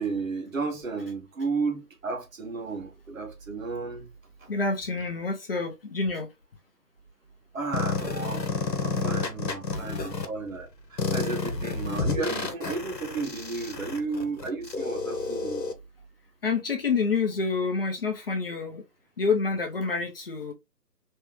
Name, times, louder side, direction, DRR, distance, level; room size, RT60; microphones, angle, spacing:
voice 1, 0.0-4.1 7.5-8.5 8.8-15.6, right 4 dB, 55° right, 1.3 m, -33 dB
voice 2, 4.5-6.3 16.4-18.8 19.2-20.5, left 4 dB, 35° left, 0.9 m, -27 dB
sound 1, 7.7-10.3 11.0-15.7, left 4 dB, 80° left, 1.1 m, -30 dB
3.4 x 3.3 x 3.1 m
figure-of-eight pair, 150°, 49 cm